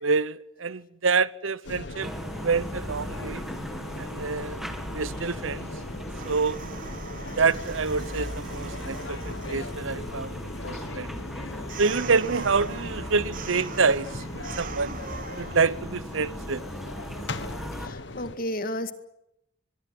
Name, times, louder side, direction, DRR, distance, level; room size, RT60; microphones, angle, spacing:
voice 1, 0.0-3.4 4.0-4.6 4.9-5.7 6.2-6.6 7.4-10.4 10.6-11.1 11.8-15.0 15.4-16.6, right 4 dB, 85° right, 0.9 m, -27 dB
sound 1, 1.6-18.4, left 2 dB, 65° left, 1.4 m, -39 dB
sound 2, 2.0-17.9, equal, ahead, 2.1 m, -39 dB
sound 3, 6.2-15.8, right 5 dB, 45° right, 1.2 m, -42 dB
voice 2, 17.7-18.9, left 1 dB, 45° left, 2.0 m, -33 dB
23.0 x 22.5 x 7.9 m
head